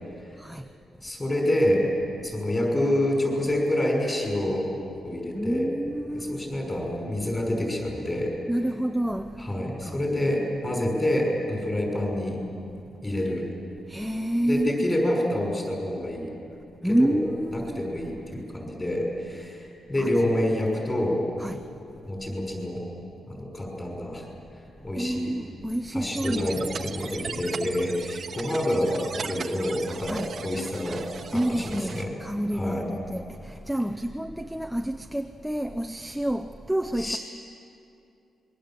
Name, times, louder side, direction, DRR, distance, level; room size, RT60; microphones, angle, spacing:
voice 1, 0.3-0.7 5.3-6.5 8.5-10.0 13.9-14.7 16.8-17.8 20.0-20.1 21.4-21.7 24.8-26.7 30.0-30.4 30.9-31.0 31.3-37.2, right 1 dB, ahead, 6 dB, 0.6 m, -29 dB
voice 2, 1.0-1.8 2.2-4.7 5.0-5.7 6.1-8.3 9.4-12.4 13.0-13.4 14.5-16.3 16.8-17.2 17.5-21.3 22.1-22.8 23.3-24.3 24.8-25.4 25.9-31.0 31.3-32.1 32.5-32.8 37.0-37.2, left 1 dB, 15° left, 0 dB, 5.9 m, -27 dB
sound 1, 26.0-32.0, right 6 dB, 45° right, 1.0 m, -38 dB
26.5 x 22.5 x 7.6 m, 2.7 s
wide cardioid pair, 165°, 0 cm